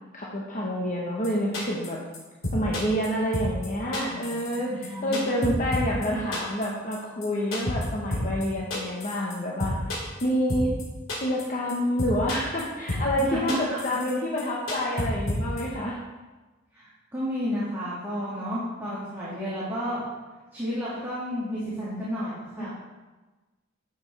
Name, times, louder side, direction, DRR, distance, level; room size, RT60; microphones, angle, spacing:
voice 1, 0.1-2.0 2.5-9.7 10.2-10.7 11.2-16.0 18.1-18.6 22.6-22.7, equal, 40° left, -4 dB, 1.1 m, -28 dB
sound 1, 1.2-1.3 1.5-1.9 2.1-2.2 2.4-3.1 3.3-3.7 3.9-4.6 4.8-6.1 6.3-6.7 6.9-7.0 7.2-7.3 7.5-7.8 8.1-8.4 8.7-9.3 9.6-10.2 10.5-10.8 11.1-11.4 11.7-11.8 12.0-12.6 12.9-13.2 13.5-14.1 14.4-14.5 14.7-15.6, left 2 dB, 85° left, 2.8 m, -30 dB
voice 2, 4.0-5.2 13.3-13.8 16.7-20.1 20.5-22.7, equal, 10° right, -10 dB, 2.0 m, -32 dB
10.5 x 7.2 x 3.3 m, 1.2 s
head